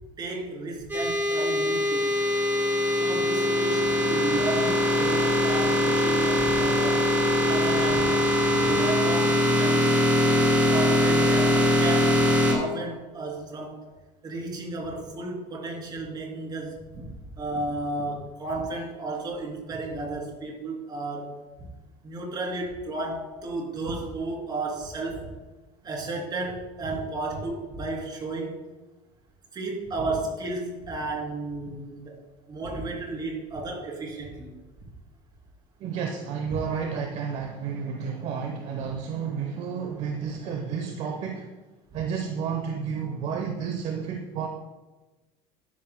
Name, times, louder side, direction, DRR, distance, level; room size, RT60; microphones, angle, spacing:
voice 1, 0.2-2.2 2.9-7.0 7.4-8.1 8.5-9.9 10.7-13.8 14.2-21.3 21.6-21.7 22.0-25.3 25.8-28.6 29.5-32.2 32.5-34.5, right 2 dB, 30° right, -1 dB, 2.9 m, -33 dB
sound 1, 0.9-12.5, left 1 dB, 10° right, 2.7 m, -22 dB
voice 2, 35.8-41.5 41.9-44.5, right 6 dB, 50° right, 3 dB, 0.9 m, -31 dB
12.5 x 10.5 x 2.2 m, 1.2 s
cardioid pair, 150°, 15 cm